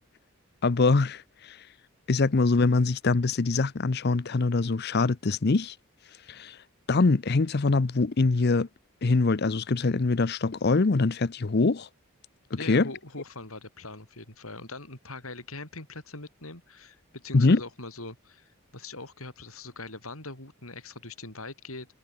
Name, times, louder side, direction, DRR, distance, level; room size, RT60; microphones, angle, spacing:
voice 1, 0.6-1.2 2.1-5.7 6.3-6.5 6.9-8.7 9.0-11.9 12.7-12.9 17.3-17.6, left 3 dB, 50° left, 0.6 m, -23 dB
voice 2, 12.5-21.9, left 3 dB, 80° left, 7.0 m, -42 dB
head